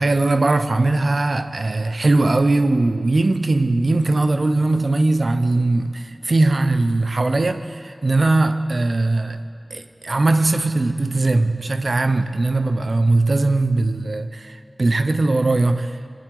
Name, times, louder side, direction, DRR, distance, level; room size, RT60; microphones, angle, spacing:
voice 1, 0.0-9.4 9.7-16.1, right 2 dB, 75° right, 1.0 m, -20 dB
25.0 x 23.5 x 4.9 m
wide cardioid pair, 60°, 0 cm